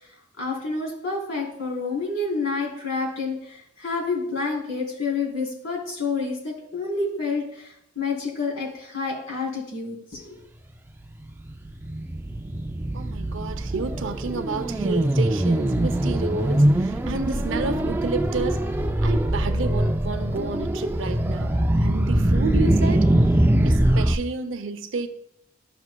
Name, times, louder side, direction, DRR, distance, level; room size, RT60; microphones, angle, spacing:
voice 1, 0.4-10.4, left 4 dB, 70° left, 3.1 m, -29 dB
sound 1, 11.1-24.2, right 1 dB, 10° right, 0.3 m, -22 dB
voice 2, 12.9-23.1 23.6-25.1, right 3 dB, 65° right, 0.6 m, -30 dB
12.0 x 5.9 x 2.2 m
head